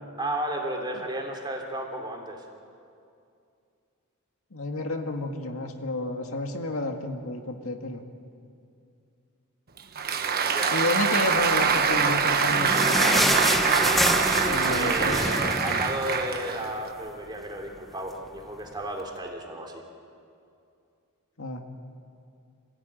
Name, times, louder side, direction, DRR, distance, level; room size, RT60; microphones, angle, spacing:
voice 1, 0.2-2.4 10.0-10.8 14.7-19.8, right 1 dB, 20° right, 1 dB, 3.1 m, -33 dB
voice 2, 4.5-8.0 10.7-13.4 14.4-15.8 21.4-21.6, left 2 dB, 65° left, 4 dB, 1.9 m, -31 dB
Applause, 9.8-16.9, right 6 dB, 45° right, 1.3 m, -24 dB
sound 1, 11.9-16.7 17.0-17.1 17.4-17.6 18.3-18.4, equal, ahead, 1.3 m, -27 dB
27.0 x 16.0 x 9.2 m, 2.5 s
head